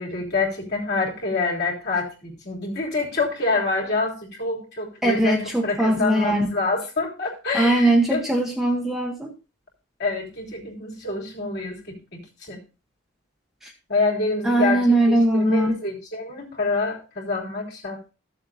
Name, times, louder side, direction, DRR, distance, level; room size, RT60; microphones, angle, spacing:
voice 1, 0.0-8.2 10.0-12.6 13.9-18.1, left 3 dB, 50° left, -3 dB, 3.1 m, -27 dB
voice 2, 5.0-6.5 7.5-9.3 14.4-15.7, right 1 dB, ahead, 0 dB, 1.0 m, -20 dB
15.0 x 7.3 x 2.5 m, 0.31 s
head